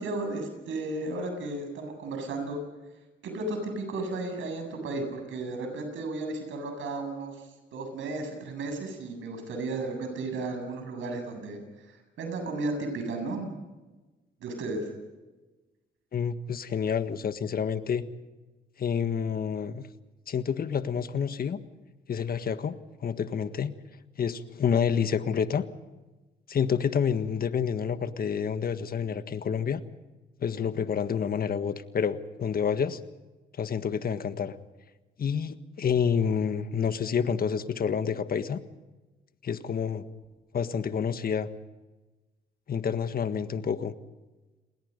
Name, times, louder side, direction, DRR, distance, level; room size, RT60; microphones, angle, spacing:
voice 1, 0.0-2.6 3.2-13.6 14.4-14.9, right 2 dB, 75° right, 5 dB, 7.7 m, -34 dB
voice 2, 16.1-18.0 18.8-19.8 20.3-21.6 22.1-22.8 23.0-23.7 24.2-25.6 26.5-29.8 30.4-33.0 33.6-34.5 35.2-38.6 39.4-40.0 40.5-41.5 42.7-43.9, left 7 dB, 50° left, 10 dB, 1.6 m, -28 dB
29.5 x 20.5 x 5.4 m, 1.2 s
cardioid pair, 90°, 20 cm